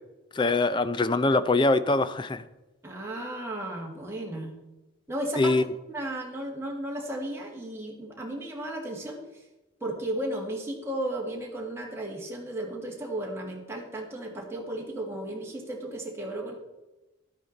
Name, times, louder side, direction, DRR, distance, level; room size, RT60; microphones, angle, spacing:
voice 1, 0.3-2.4 5.4-5.6, left 2 dB, 25° left, 14 dB, 0.4 m, -23 dB
voice 2, 2.8-4.5 5.1-5.5 5.9-9.4 9.8-16.5, right 1 dB, 15° right, -2 dB, 2.0 m, -34 dB
11.5 x 9.0 x 4.1 m, 1.0 s
head